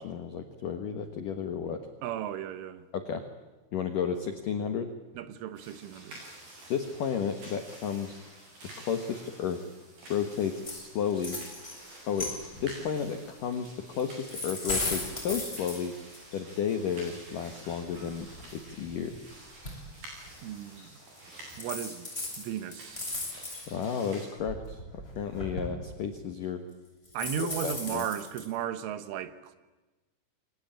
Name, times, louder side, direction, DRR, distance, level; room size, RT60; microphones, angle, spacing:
voice 1, 0.0-1.9 2.9-3.2 3.7-4.9 6.7-8.2 8.8-9.6 10.1-11.4 12.1-12.3 12.6-16.0 16.3-18.3 18.5-19.2 23.7-26.6 27.4-28.1, left 7 dB, 65° left, 2.2 m, -32 dB
voice 2, 2.0-2.9 5.2-6.2 20.4-20.9 21.6-22.1 22.4-23.1 27.2-29.6, right 10 dB, 75° right, 3.6 m, -35 dB
sound 1, 5.5-24.3, right 1 dB, 45° right, 8.6 m, -50 dB
sound 2, 10.6-10.8 11.1-11.7 12.2-12.7 14.0-16.2 17.3-17.4 17.9-19.1 19.6-19.7 20.3-20.4 21.2-21.3 21.5-23.8 24.3-25.7 27.0-28.4, left 2 dB, 10° left, 8.0 m, -36 dB
29.0 x 22.5 x 9.0 m
omnidirectional pair, 5.8 m